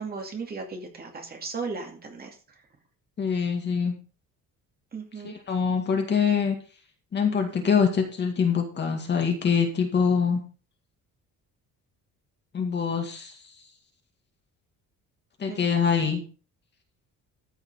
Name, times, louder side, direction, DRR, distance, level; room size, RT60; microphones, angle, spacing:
voice 1, 0.0-2.6 4.9-5.3 15.5-15.6, right 4 dB, 25° right, 3 dB, 2.5 m, -36 dB
voice 2, 3.2-3.9 5.2-6.6 7.1-10.4 12.5-13.4 15.4-16.2, left 6 dB, 30° left, 4 dB, 2.1 m, -24 dB
14.0 x 5.8 x 5.5 m, 0.37 s
cardioid pair, 175°, 34 cm